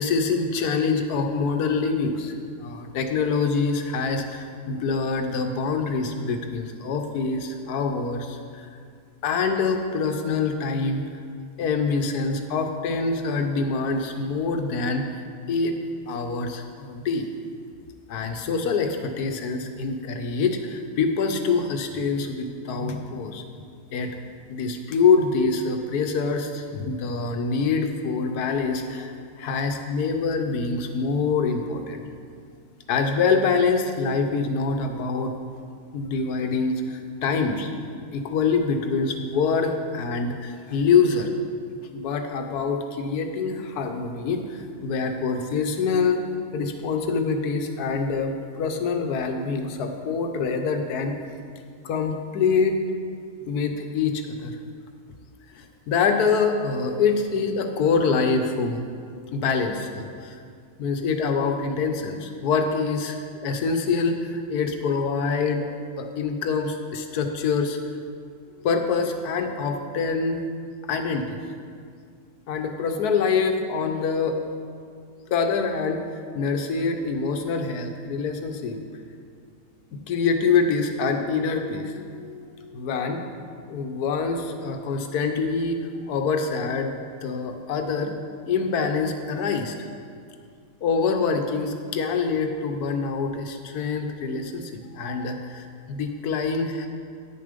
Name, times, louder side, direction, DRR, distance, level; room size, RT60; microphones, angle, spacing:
voice 1, 0.0-2.3 2.6-8.7 9.2-11.1 11.6-15.1 15.5-15.8 16.0-17.3 18.1-23.4 23.9-24.2 24.5-32.0 32.9-35.3 35.9-37.7 38.1-41.3 41.9-46.2 46.5-51.1 51.8-52.8 53.4-54.5 55.5-58.8 59.3-60.4 60.8-65.7 66.0-67.8 68.5-70.4 70.9-71.4 72.5-74.4 75.3-76.0 76.3-78.8 79.9-83.2 83.7-85.8 86.1-86.9 87.2-88.1 88.4-89.7 90.8-96.9, left 4 dB, 85° left, 5 dB, 1.3 m, -25 dB
9.7 x 6.8 x 5.2 m, 2.2 s
omnidirectional pair, 1.6 m